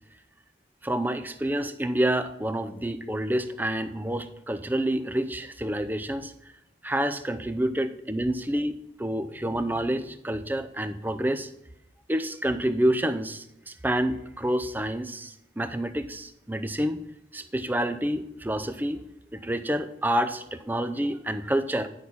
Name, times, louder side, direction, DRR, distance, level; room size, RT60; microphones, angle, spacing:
voice 1, 0.8-6.3 6.8-11.5 12.1-17.0 17.3-19.1 19.3-21.9, right 1 dB, 10° right, 11 dB, 0.5 m, -28 dB
11.0 x 5.9 x 5.6 m, 0.86 s
head